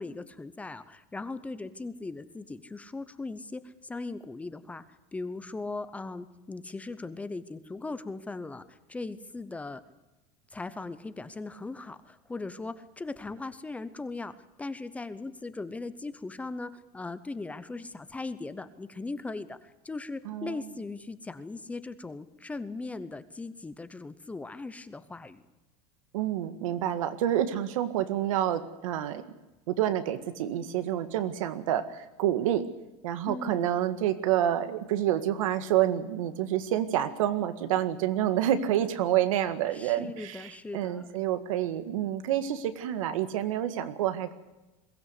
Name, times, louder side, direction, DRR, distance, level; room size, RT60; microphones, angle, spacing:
voice 1, 0.0-9.8 10.5-14.3 14.6-25.4 33.3-33.7 39.7-41.1, left 3 dB, 10° left, 13 dB, 0.7 m, -39 dB
voice 2, 20.3-20.6 26.1-29.3 29.7-32.7 33.0-44.3, right 11 dB, 85° right, 10 dB, 1.8 m, -28 dB
22.0 x 16.0 x 8.3 m, 1.0 s
supercardioid pair, 155°, 17 cm